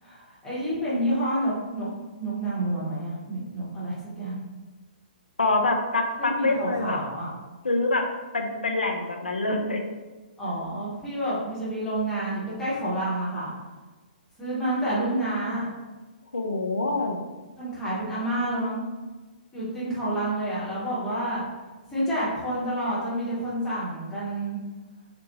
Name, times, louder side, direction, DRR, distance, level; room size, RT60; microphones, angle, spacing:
voice 1, 0.0-1.9 2.2-4.4 6.2-7.3 10.4-13.5 14.4-15.7 17.6-18.8 19.5-21.4 21.9-24.6, right 1 dB, 10° left, -10 dB, 1.0 m, -29 dB
voice 2, 5.4-7.0 7.6-8.1 8.3-9.8 16.3-17.2, left 2 dB, 75° left, 3 dB, 0.4 m, -25 dB
3.0 x 2.1 x 2.7 m, 1.2 s
figure-of-eight pair, 120°, 5 cm